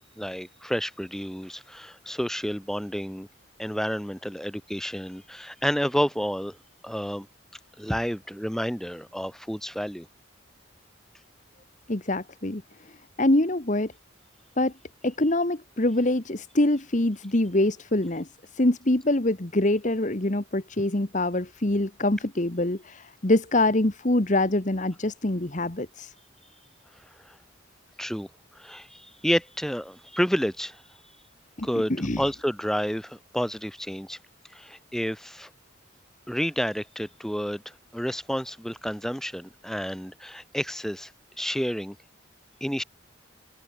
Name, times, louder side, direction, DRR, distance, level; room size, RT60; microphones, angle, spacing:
voice 1, 0.2-3.3 3.6-6.6 6.8-7.3 7.8-10.1 27.2-27.4 28.0-28.3 28.5-30.8 31.6-34.2 34.5-35.5 36.3-41.1 41.4-42.0 42.6-42.8, equal, ahead, 6.3 m, -30 dB
voice 2, 11.9-12.6 13.2-13.9 14.6-14.7 15.0-18.3 18.5-26.1 31.6-31.7 32.0-32.2, left 1 dB, 40° left, 1.4 m, -24 dB
open air
head